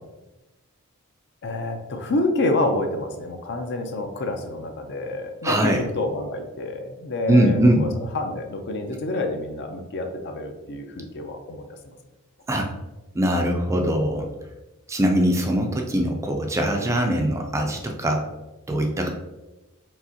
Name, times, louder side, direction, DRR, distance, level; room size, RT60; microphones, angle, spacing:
voice 1, 1.4-7.9 8.1-11.9, left 2 dB, 50° left, 5 dB, 0.5 m, -28 dB
voice 2, 5.4-5.8 7.3-7.9 12.5-12.7 13.1-14.3 14.9-18.3 18.7-19.1, right 1 dB, 15° right, 2 dB, 0.4 m, -21 dB
4.7 x 3.5 x 2.7 m, 1.1 s
head